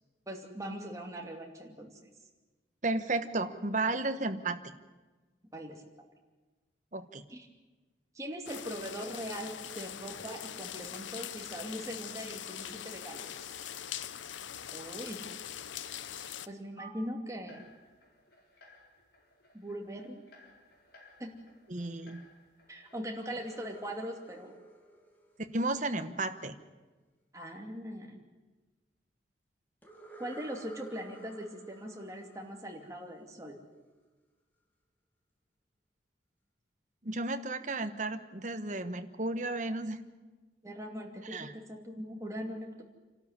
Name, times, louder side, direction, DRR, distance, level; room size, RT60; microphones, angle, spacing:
voice 1, 0.3-1.9 5.5-5.9 7.3-7.5 8.1-13.3 14.7-15.2 16.5-17.7 19.5-20.2 21.2-21.3 22.7-24.6 27.3-28.2 30.2-33.6 40.6-42.8, equal, 15° right, 1 dB, 2.6 m, -41 dB
voice 2, 2.8-4.7 6.9-7.2 21.7-22.2 25.5-26.6 37.0-40.0 41.3-41.5, right 2 dB, 40° right, 9 dB, 1.2 m, -33 dB
sound 1, 8.5-16.5, left 10 dB, 90° left, 0.7 m, -42 dB
sound 2, 15.8-16.3 16.8-16.9 17.5-23.7, equal, 55° left, 4.5 m, -58 dB
sound 3, 23.2-26.2 29.8-33.5, right 2 dB, 10° left, 2.5 m, -53 dB
27.5 x 12.5 x 9.8 m, 1.2 s
head